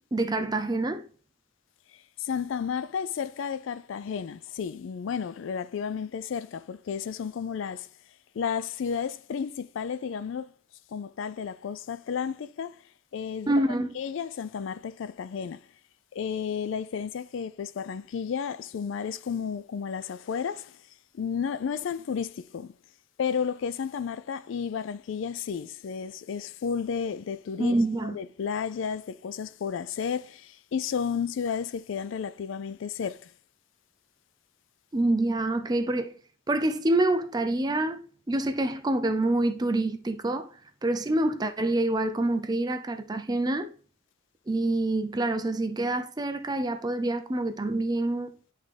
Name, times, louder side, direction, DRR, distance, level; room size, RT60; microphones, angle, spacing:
voice 1, 0.1-1.0 13.5-13.9 27.6-28.2 34.9-36.2 36.5-38.0 38.3-40.5 40.8-43.7 44.5-48.4, right 2 dB, 20° right, 0.5 m, -26 dB
voice 2, 1.9-7.9 8.3-10.5 10.9-12.8 13.1-15.7 16.1-20.8 21.1-22.7 23.2-27.7 28.0-33.3, left 7 dB, 65° left, 0.3 m, -32 dB
10.5 x 3.7 x 3.3 m
head